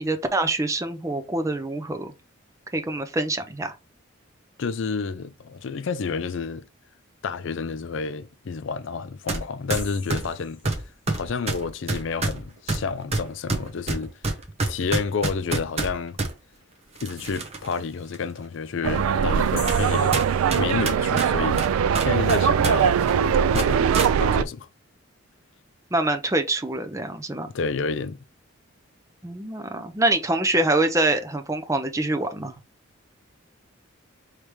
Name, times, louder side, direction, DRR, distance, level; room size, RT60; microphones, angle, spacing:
voice 1, 0.0-2.1 2.7-3.7 25.9-27.5 29.2-32.5, right 2 dB, 15° right, 0.4 m, -25 dB
voice 2, 4.6-6.6 7.2-10.6 11.1-14.1 14.7-16.2 17.0-20.2 20.6-21.7 22.0-23.0 23.5-23.9 24.2-24.7 27.5-28.2, left 5 dB, 65° left, 0.4 m, -29 dB
sound 1, 9.3-9.4 9.7-16.3 17.0-17.7 18.1-18.2 19.0-19.1 19.7-19.8 20.1-22.7 23.0-23.1 23.5-24.1, right 2 dB, 30° right, 0.8 m, -27 dB
sound 2, 9.7-11.2 19.6-21.3, left 6 dB, 40° left, 1.3 m, -42 dB
sound 3, 18.8-24.4, right 7 dB, 90° right, 0.3 m, -21 dB
5.0 x 3.2 x 3.1 m
head